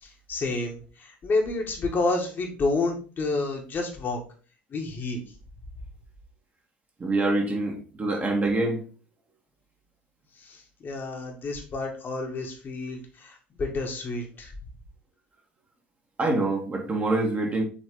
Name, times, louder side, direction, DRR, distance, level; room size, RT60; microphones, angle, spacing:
voice 1, 0.0-4.2 4.7-5.2 10.4-14.5, left 3 dB, 35° left, 1.8 m, -29 dB
voice 2, 7.0-8.8 16.2-17.6, right 2 dB, 25° right, 2.0 m, -25 dB
7.1 x 4.0 x 3.8 m
figure-of-eight pair, 65°, 6 cm